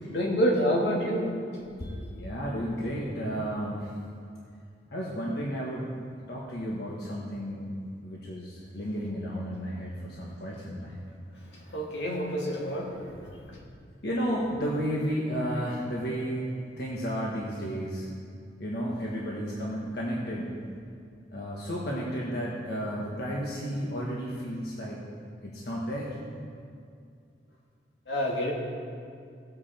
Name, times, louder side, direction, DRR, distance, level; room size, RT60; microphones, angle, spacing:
voice 1, 0.1-1.3 1.8-1.9 11.7-13.3 28.1-28.5, equal, 85° left, -2 dB, 2.3 m, -27 dB
voice 2, 2.2-3.9 4.9-5.9 6.3-11.0 14.0-16.4 16.8-18.1 18.6-20.6 21.3-25.0 25.4-26.2, equal, 65° left, -4 dB, 1.6 m, -32 dB
16.5 x 8.6 x 4.4 m, 2.4 s
head